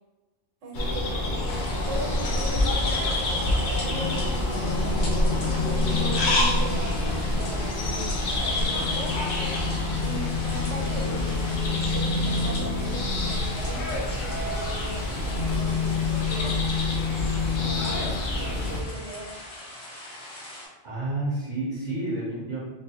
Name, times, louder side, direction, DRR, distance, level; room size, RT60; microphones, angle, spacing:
voice 1, 0.6-1.3 1.9-2.8 3.7-5.5 6.0-9.2 10.0-16.6 17.6-19.3, right 2 dB, 80° right, -1 dB, 1.2 m, -38 dB
sound 1, 0.7-18.8, left 2 dB, 50° left, 0.6 m, -26 dB
sound 2, 1.4-20.7, left 1 dB, 70° left, 1.2 m, -41 dB
voice 2, 20.8-22.6, right 2 dB, 50° right, -5 dB, 0.8 m, -30 dB
3.3 x 3.1 x 2.8 m, 1.2 s
omnidirectional pair, 1.2 m